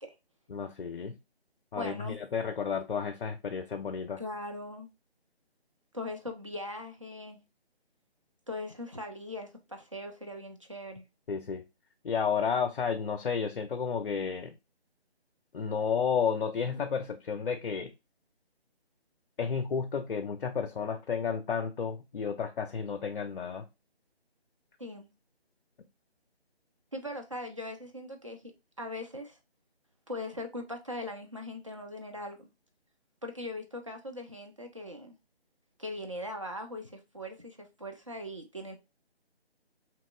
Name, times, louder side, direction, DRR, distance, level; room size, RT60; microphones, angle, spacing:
voice 1, 0.5-1.2 1.7-4.2 11.3-11.6 12.0-14.5 15.5-17.9 19.4-23.6, left 6 dB, 60° left, 0.4 m, -32 dB
voice 2, 1.7-2.2 4.2-4.9 5.9-7.4 8.5-11.0 24.8-25.1 26.9-28.5 28.8-29.4 30.1-32.5 33.2-35.2 35.8-38.8, left 1 dB, 30° right, 0.4 m, -40 dB
2.9 x 2.8 x 2.2 m
figure-of-eight pair, 155°, 32 cm